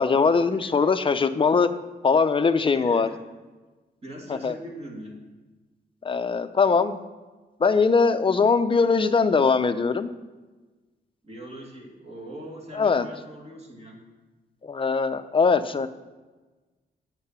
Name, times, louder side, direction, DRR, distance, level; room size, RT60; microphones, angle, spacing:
voice 1, 0.0-1.7 2.0-3.1 4.3-4.5 6.0-7.0 7.6-10.1 12.8-13.1 14.6-15.9, left 5 dB, 30° left, 10 dB, 0.5 m, -21 dB
voice 2, 2.7-3.2 4.0-5.2 11.2-14.0, equal, 35° right, -1 dB, 2.3 m, -41 dB
8.6 x 8.2 x 5.6 m, 1.2 s
wide cardioid pair, 140°, 19 cm